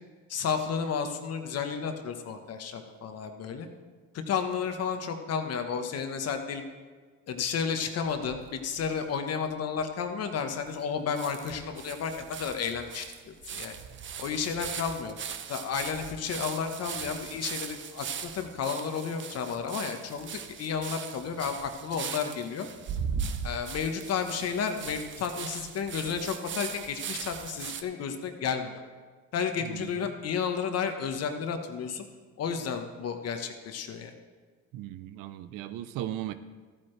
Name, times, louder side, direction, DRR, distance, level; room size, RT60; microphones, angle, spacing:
voice 1, 0.3-3.7 4.1-6.7 7.3-13.7 14.2-15.2 15.5-20.3 20.6-22.7 23.4-28.8 29.3-32.0 32.4-34.1, left 6 dB, 45° left, 6 dB, 1.2 m, -32 dB
sound 1, 8.1-9.0 9.5-9.6 9.8-9.9 10.7-10.8 11.2-27.8, right 7 dB, 35° right, 0.7 m, -39 dB
voice 2, 29.6-30.1 34.7-36.3, right 13 dB, 70° right, 12 dB, 0.7 m, -37 dB
14.0 x 8.9 x 3.3 m, 1.4 s
supercardioid pair, 95°, 33 cm